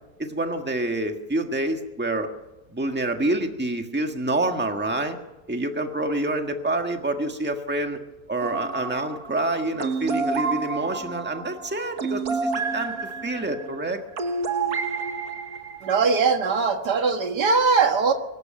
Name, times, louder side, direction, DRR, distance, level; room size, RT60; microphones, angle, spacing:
voice 1, 0.2-2.3 2.7-5.2 5.5-8.0 8.3-14.0, right 2 dB, 5° right, 5 dB, 1.5 m, -27 dB
sound 1, 8.4-16.1, right 4 dB, 65° right, 1.9 m, -29 dB
voice 2, 15.8-18.1, right 5 dB, 85° right, 6 dB, 2.2 m, -21 dB
23.0 x 13.0 x 8.8 m, 1.0 s
omnidirectional pair, 1.7 m